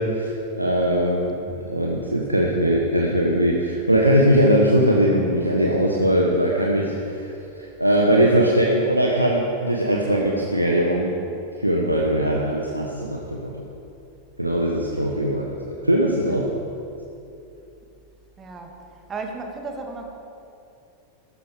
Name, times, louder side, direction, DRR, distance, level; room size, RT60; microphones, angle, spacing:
voice 1, 0.0-11.1 11.6-13.5 14.4-15.6 15.8-16.5, equal, 90° right, -2 dB, 1.2 m, -20 dB
voice 2, 18.4-18.8 19.1-20.2, right 3 dB, 20° right, 3 dB, 1.9 m, -34 dB
14.0 x 12.5 x 5.0 m, 2.7 s
figure-of-eight pair, 90°, 0 cm